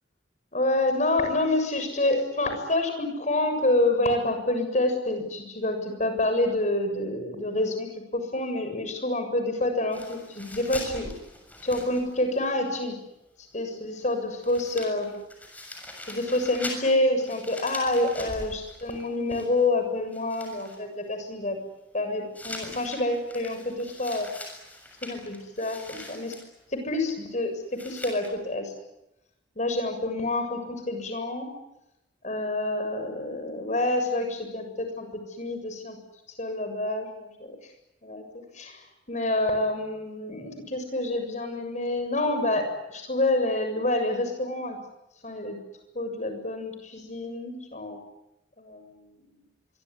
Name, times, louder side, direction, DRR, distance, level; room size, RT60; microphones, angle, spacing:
voice 1, 0.5-7.9 8.1-11.1 11.6-13.0 13.5-15.2 16.1-21.6 21.9-24.3 25.0-26.4 26.7-27.5 27.8-28.7 29.6-31.5 32.2-35.1 35.4-36.0 36.4-37.6 38.0-38.2 38.5-38.8 39.1-44.8 45.2-45.6 45.9-48.0 48.6-49.0, left 2 dB, 45° left, 6 dB, 7.2 m, -27 dB
sound 1, 9.9-12.5 12.8-12.9 14.1-14.2 14.4-19.8 20.1-20.8 22.3-26.5 27.7-28.3, left 1 dB, 10° left, 6.9 m, -42 dB
25.0 x 23.5 x 9.8 m, 0.91 s
head